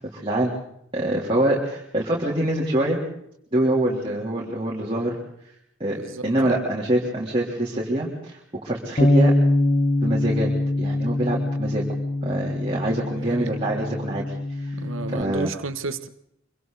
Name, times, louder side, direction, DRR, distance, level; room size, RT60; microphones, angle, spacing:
voice 1, 0.0-0.5 0.9-3.0 3.5-5.2 5.8-9.3 10.0-10.5 10.8-11.8 12.2-14.2 14.6-14.8 15.1-15.5, right 1 dB, 25° right, -4 dB, 3.5 m, -25 dB
voice 2, 6.0-6.6 13.3-13.5 14.8-16.1, right 3 dB, 80° right, 9 dB, 1.4 m, -32 dB
Bass guitar, 9.0-15.2, left 1 dB, 35° left, 1.1 m, -23 dB
26.0 x 25.0 x 4.1 m, 0.73 s
head